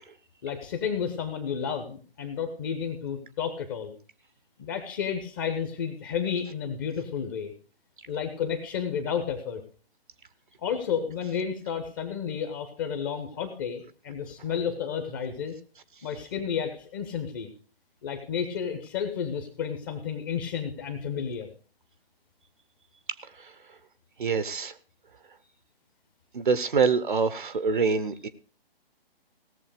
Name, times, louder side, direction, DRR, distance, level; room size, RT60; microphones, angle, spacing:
voice 1, 0.4-3.9 4.6-7.5 8.1-9.6 10.6-15.5 16.0-17.5 18.0-21.5, left 7 dB, 20° left, 7 dB, 1.1 m, -31 dB
voice 2, 23.2-23.8 24.2-24.8 26.3-28.3, right 5 dB, 55° right, 12 dB, 0.9 m, -26 dB
17.5 x 7.1 x 5.0 m, 0.39 s
figure-of-eight pair, 140°, 30 cm